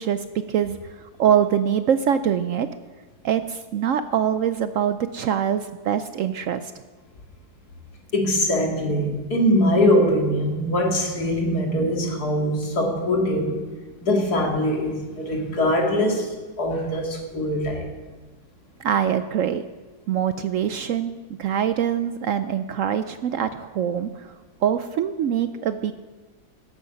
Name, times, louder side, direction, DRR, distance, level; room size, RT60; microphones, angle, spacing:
voice 1, 0.0-2.7 3.2-6.7 18.8-19.6 20.1-21.1 21.4-24.3 24.6-25.9, right 9 dB, 75° right, 11 dB, 0.7 m, -24 dB
voice 2, 8.1-13.6 14.0-17.9, left 1 dB, 60° left, 1 dB, 2.6 m, -22 dB
14.0 x 10.5 x 5.7 m, 1.3 s
omnidirectional pair, 1.9 m